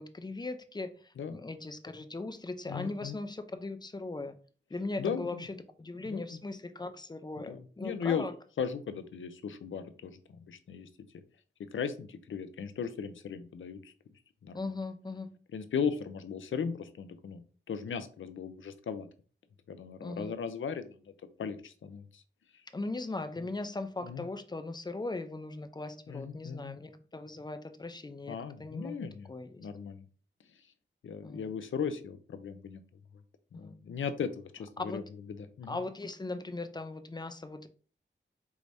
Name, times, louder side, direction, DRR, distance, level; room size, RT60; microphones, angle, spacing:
voice 1, 0.0-4.4 4.7-5.5 5.8-8.3 14.5-15.3 20.0-20.3 22.7-29.0 29.3-29.6 31.2-31.5 33.5-33.7 34.8-35.0 35.7-37.7, left 2 dB, 20° left, 0.5 m, -39 dB
voice 2, 2.7-3.2 5.0-5.4 6.0-6.4 7.5-8.2 8.6-10.9 11.6-13.9 14.4-14.7 15.5-17.4 17.7-19.1 19.7-21.1 21.4-22.2 22.5-22.6 24.0-24.3 26.1-26.8 28.3-29.3 29.6-30.1 31.0-32.8 33.5-35.0 35.3-35.8, left 6 dB, 85° left, 0.5 m, -37 dB
4.7 x 3.2 x 2.6 m
wide cardioid pair, 80°, 20 cm